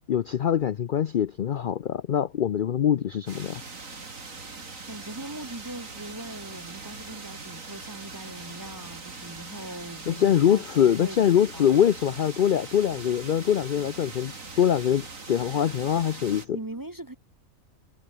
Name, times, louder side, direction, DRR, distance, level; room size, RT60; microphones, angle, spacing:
voice 1, 0.0-3.6 10.1-16.6, left 9 dB, 55° left, 0.6 m, -23 dB
sound 1, 3.3-16.5, right 3 dB, 80° right, 3.5 m, -41 dB
voice 2, 4.9-11.7 16.5-17.1, right 1 dB, 20° right, 0.7 m, -40 dB
omnidirectional pair, 1.4 m